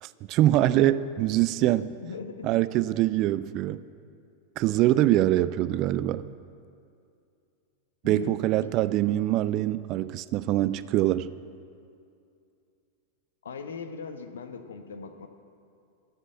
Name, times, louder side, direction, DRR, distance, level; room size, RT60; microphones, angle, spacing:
voice 1, 0.0-1.9 2.4-3.8 4.6-6.3 8.0-11.3, right 14 dB, 40° right, 16 dB, 0.4 m, -24 dB
voice 2, 2.0-2.5 3.0-3.1 8.0-8.8 13.4-15.3, left 5 dB, 65° left, 7 dB, 1.0 m, -40 dB
13.0 x 7.5 x 8.7 m, 2.5 s
figure-of-eight pair, 90°, 0 cm